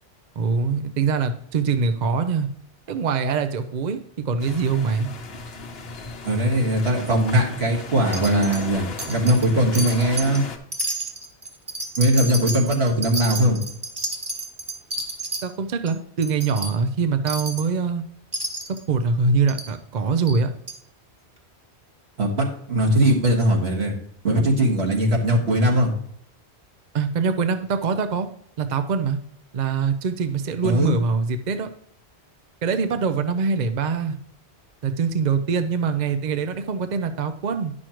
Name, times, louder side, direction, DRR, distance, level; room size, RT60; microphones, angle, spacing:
voice 1, 0.4-2.5 2.9-4.0 4.2-5.1 15.4-18.0 18.7-20.5 26.9-28.3 28.6-29.2 29.5-31.7 32.6-34.2 34.8-37.7, right 5 dB, 50° right, 9 dB, 0.6 m, -23 dB
sound 1, 4.4-10.6, left 4 dB, 65° left, 1.1 m, -36 dB
voice 2, 6.2-10.4 12.0-13.6 22.2-23.9 24.2-25.9 30.6-31.0, right 1 dB, 70° right, -1 dB, 1.9 m, -20 dB
Wind chime, 8.1-8.6 9.0-9.5 9.7-10.4 10.7-15.4 15.9-16.0 16.2-16.7 17.3-17.7 18.3-18.8 19.5-19.7 20.3-20.4 20.7-20.8, right 2 dB, 25° right, 1.1 m, -30 dB
10.0 x 6.3 x 3.0 m, 0.69 s
omnidirectional pair, 1.1 m